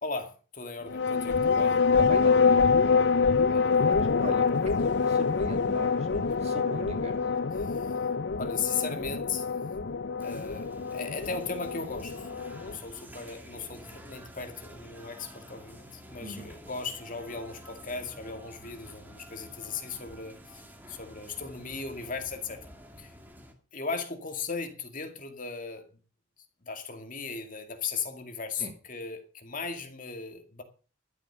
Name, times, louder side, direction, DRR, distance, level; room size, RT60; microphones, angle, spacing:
voice 1, 0.0-1.8 3.3-3.7 7.5-7.9 8.4-9.5 10.2-12.3 12.6-20.6 20.9-22.6 23.0-23.1 23.7-25.9 26.6-30.6, left 5 dB, 40° left, 2.2 m, -37 dB
sound 1, 0.9-12.8, left 5 dB, 60° left, 0.6 m, -26 dB
voice 2, 2.0-3.1 3.7-4.5 4.8-7.1 16.2-16.5 28.6-28.7, right 1 dB, 35° right, 2.7 m, -41 dB
sound 2, 10.2-23.5, equal, 10° right, 2.1 m, -49 dB
13.0 x 8.6 x 6.8 m
head